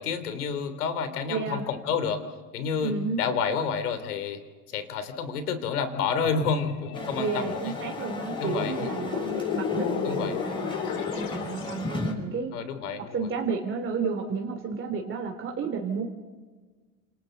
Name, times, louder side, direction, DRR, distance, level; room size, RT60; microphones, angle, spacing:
voice 1, 0.0-2.2 2.5-4.4 4.7-7.7 8.4-8.7 10.0-10.4 12.5-13.2, left 6 dB, 85° left, 9 dB, 3.3 m, -29 dB
voice 2, 1.3-1.6 2.8-3.2 7.2-12.5 12.9-16.0, right 5 dB, 30° right, 2 dB, 2.8 m, -32 dB
sound 1, 6.2-11.9, left 8 dB, 65° left, 3.4 m, -33 dB
sound 2, 6.9-12.1, left 2 dB, 10° left, 6.3 m, -36 dB
29.5 x 27.5 x 4.0 m, 1.4 s
supercardioid pair, 110°, 44 cm